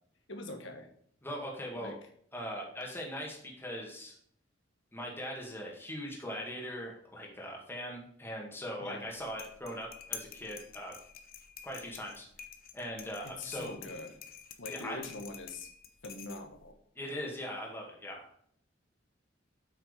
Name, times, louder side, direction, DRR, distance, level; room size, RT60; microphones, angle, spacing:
voice 1, 0.3-0.9 1.8-2.0 8.8-9.0 13.2-14.2 14.6-15.7 16.0-16.8, left 2 dB, 75° left, 5 dB, 1.8 m, -43 dB
voice 2, 1.2-2.0 2.3-4.2 4.9-10.9 11.6-12.3 12.7-13.7 14.7-15.0 17.0-18.5, equal, 10° left, -2 dB, 2.0 m, -40 dB
sound 1, 9.0-16.7, left 8 dB, 50° left, 1.0 m, -48 dB
8.2 x 6.4 x 5.1 m, 0.62 s
head